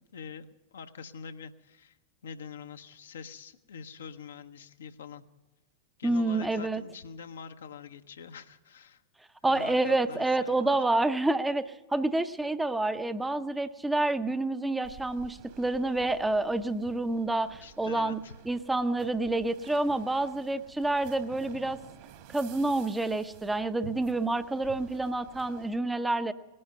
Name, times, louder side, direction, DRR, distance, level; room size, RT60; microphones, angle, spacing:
voice 1, 0.0-2.0 2.2-5.2 6.0-9.0 9.5-10.8 17.6-18.3, left 6 dB, 65° left, 8 dB, 0.8 m, -45 dB
voice 2, 6.0-6.8 9.4-18.2 18.5-21.8 22.3-26.3, right 2 dB, 5° right, 11 dB, 0.7 m, -28 dB
sound 1, 14.8-25.8, right 9 dB, 45° right, 1.5 m, -51 dB
19.0 x 11.0 x 6.7 m, 1.1 s
figure-of-eight pair, 90°, 0 cm